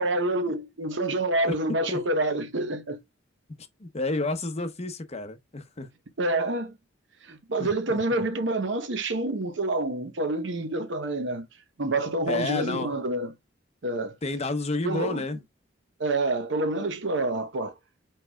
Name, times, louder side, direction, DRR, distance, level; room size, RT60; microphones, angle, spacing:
voice 1, 0.0-3.0 6.2-6.8 7.2-11.5 11.8-13.3 13.8-14.1 14.8-15.2 16.0-17.7, right 2 dB, 65° right, 0.9 m, -27 dB
voice 2, 1.5-2.0 3.8-5.9 7.6-8.2 12.3-12.9 14.2-15.4, left 2 dB, 35° left, 0.8 m, -31 dB
4.7 x 4.5 x 2.3 m
head